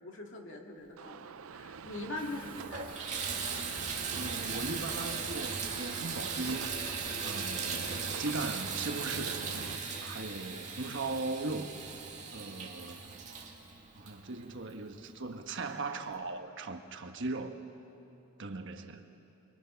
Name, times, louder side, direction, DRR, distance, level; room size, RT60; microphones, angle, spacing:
voice 1, 0.0-2.9, left 2 dB, 60° left, 1 dB, 2.5 m, -42 dB
sound 1, 1.0-9.8, right 6 dB, 75° right, 0.5 m, -47 dB
Water tap faucet / Bathtub (filling or washing), 1.9-2.0 2.4-14.8 15.5-15.6 16.1-16.2, right 5 dB, 35° right, 2.2 m, -38 dB
Wind, 2.2-9.2, right 2 dB, 10° right, 3.0 m, -54 dB
voice 2, 4.1-9.5 10.0-11.7 12.3-13.3 13.9-17.6 18.4-19.1, right 3 dB, 60° right, 6 dB, 1.3 m, -39 dB
25.5 x 23.5 x 5.7 m, 2.8 s
head